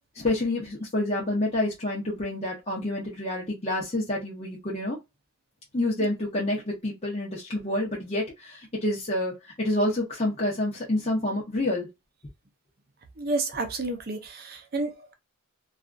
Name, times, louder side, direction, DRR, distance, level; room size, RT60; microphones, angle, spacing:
voice 1, 0.2-5.0 5.7-11.9, left 1 dB, 30° left, 0.8 m, -28 dB
voice 2, 13.2-15.1, right 2 dB, 45° right, 0.6 m, -30 dB
2.7 x 2.4 x 2.4 m
head